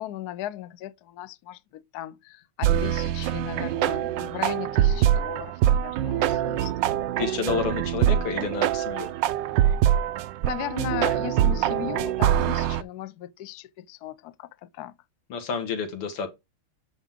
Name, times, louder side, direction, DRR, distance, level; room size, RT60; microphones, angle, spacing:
voice 1, 0.0-6.7 10.4-15.0, left 13 dB, 70° left, 0.9 m, -37 dB
sound 1, 2.6-12.8, right 11 dB, 75° right, 1.1 m, -24 dB
voice 2, 7.2-9.1 15.3-16.3, left 6 dB, 85° left, 2.6 m, -30 dB
9.3 x 5.9 x 3.7 m
omnidirectional pair, 2.4 m